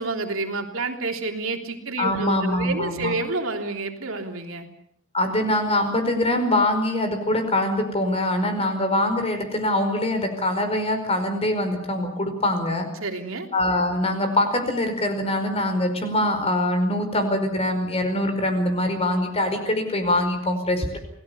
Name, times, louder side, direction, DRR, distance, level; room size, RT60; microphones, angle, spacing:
voice 1, 0.0-4.7 13.0-13.5, right 3 dB, 75° right, 3 dB, 3.3 m, -29 dB
voice 2, 2.0-3.1 5.1-12.9 13.5-21.0, left 1 dB, 30° left, 7 dB, 5.0 m, -23 dB
28.5 x 19.5 x 7.0 m, 0.68 s
head